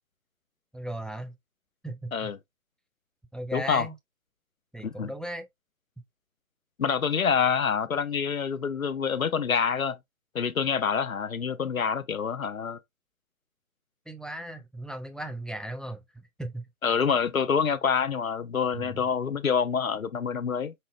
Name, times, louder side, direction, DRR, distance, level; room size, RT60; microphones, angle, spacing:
voice 1, 0.7-1.3 1.8-2.3 3.3-3.9 4.7-5.5 14.1-16.0 16.4-16.6 18.7-19.0, right 1 dB, ahead, 0.3 m, -36 dB
voice 2, 3.5-3.9 4.8-5.1 6.8-10.0 10.3-12.8 16.8-20.7, left 6 dB, 85° left, 0.7 m, -26 dB
5.3 x 2.1 x 3.4 m
figure-of-eight pair, 160°, 40 cm